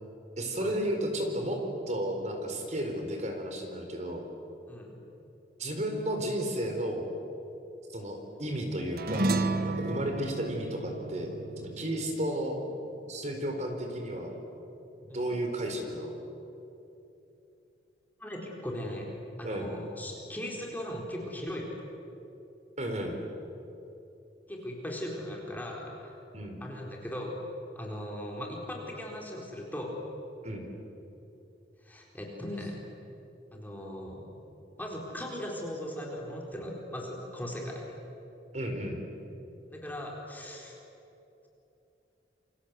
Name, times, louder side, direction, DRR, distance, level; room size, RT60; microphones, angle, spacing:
voice 1, 0.4-1.6 1.9-4.2 5.6-7.1 7.9-9.4 9.7-12.6 13.1-14.3 15.0-16.2 19.4-19.7 22.8-23.2 26.3-26.6 30.4-30.7 38.5-39.0, right 1 dB, 40° right, 4 dB, 4.4 m, -33 dB
sound 1, 9.0-13.7, right 2 dB, 55° right, 1.4 m, -33 dB
voice 2, 18.2-21.8 24.5-26.1 26.6-27.4 27.8-30.0 31.8-32.8 33.5-34.2 34.8-37.8 39.7-40.8, left 1 dB, 10° left, -1 dB, 4.2 m, -38 dB
28.5 x 25.0 x 8.3 m, 2.9 s
head